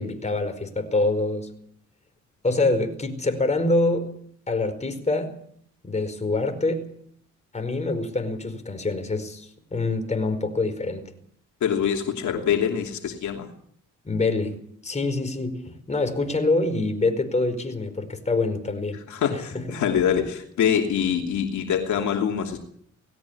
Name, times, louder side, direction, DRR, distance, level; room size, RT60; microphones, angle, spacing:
voice 1, 0.0-1.5 2.4-4.1 4.5-5.4 5.8-6.9 7.5-11.1 14.0-14.6 14.8-19.0 19.3-19.8, left 2 dB, 25° left, 4.8 m, -25 dB
voice 2, 11.6-13.5 19.1-22.6, left 8 dB, 75° left, 2.9 m, -24 dB
19.0 x 16.5 x 8.5 m
cardioid pair, 90°, 30 cm